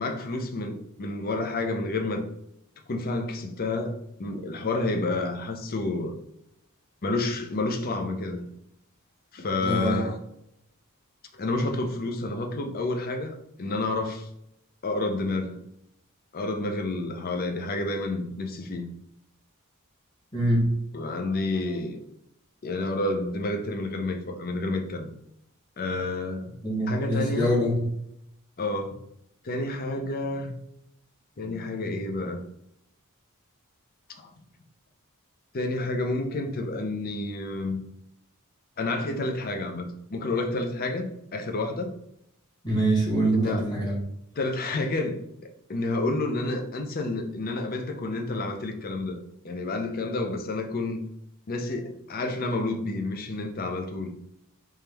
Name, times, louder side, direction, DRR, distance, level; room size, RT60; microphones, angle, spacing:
voice 1, 0.0-2.2 2.9-6.2 7.0-8.4 9.3-10.2 11.3-14.3 14.8-15.5 16.3-18.9 20.9-22.0 22.6-25.1 25.8-26.5 26.9-27.5 28.6-29.0 29.4-30.5 31.4-32.4 34.1-34.3 35.5-37.8 38.8-41.9 43.3-43.7 44.4-45.2 45.7-49.2 49.4-51.0 51.5-54.1, left 2 dB, 45° left, 0.5 m, -29 dB
voice 2, 9.6-10.0 20.3-20.7 26.6-27.8 42.6-44.0, right 1 dB, 20° left, 1.3 m, -24 dB
3.6 x 2.9 x 3.3 m
head